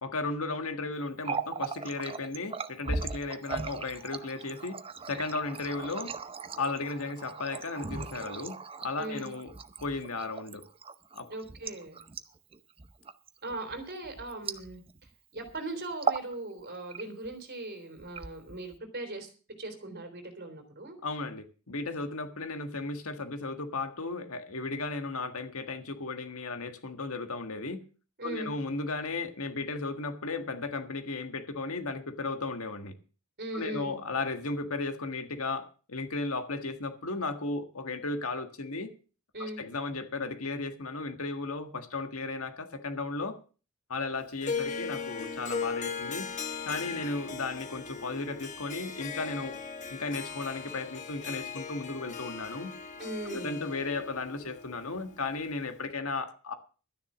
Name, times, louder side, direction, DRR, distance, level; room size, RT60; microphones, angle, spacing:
voice 1, 0.0-4.8 5.1-6.1 6.5-9.5 9.8-10.6 11.1-11.3 21.0-27.8 28.2-32.9 33.5-38.9 39.4-43.4 43.9-46.3 46.6-49.6 49.9-52.7 53.3-56.5, left 3 dB, 75° left, 8 dB, 1.7 m, -35 dB
Water tap faucet, 1.1-15.1 15.4-15.6 15.9-16.3 16.7-17.3 18.0-18.8, right 4 dB, 25° right, 0.7 m, -38 dB
voice 2, 9.0-9.3 11.3-12.0 13.4-14.8 15.3-19.3 19.6-21.0 28.2-28.5 33.4-34.0 39.3-39.6 53.0-53.7, right 2 dB, 50° right, 6 dB, 3.4 m, -39 dB
Harp, 44.4-55.7, left 5 dB, 35° left, 1.4 m, -38 dB
12.5 x 10.5 x 6.1 m, 0.37 s
head